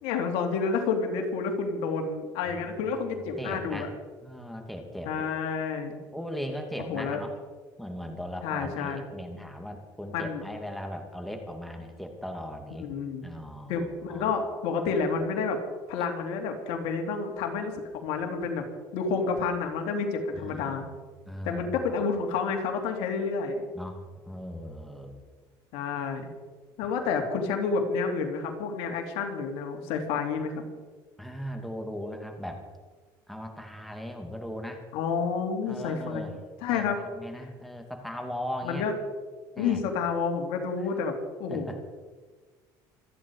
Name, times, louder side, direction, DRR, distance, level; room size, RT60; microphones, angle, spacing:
voice 1, 0.0-3.9 5.0-6.0 6.9-7.2 8.4-9.1 10.1-10.4 12.8-13.2 13.7-15.6 15.9-18.7 18.9-20.9 21.4-23.7 25.7-26.3 26.8-30.6 34.9-36.3 36.6-37.0 38.6-38.9 39.6-41.1 41.4-41.8, left 5 dB, 75° left, 4 dB, 2.9 m, -29 dB
voice 2, 2.7-3.9 4.2-5.3 6.1-7.4 7.8-12.9 13.2-14.3 20.3-20.9 21.3-21.6 23.7-25.2 31.2-32.6 33.3-34.8 35.7-36.3 36.7-38.9 39.5-39.8 40.8-40.9 41.5-41.8, equal, ahead, 3 dB, 2.6 m, -38 dB
27.0 x 10.0 x 4.8 m, 1.4 s
supercardioid pair, 100°, 10 cm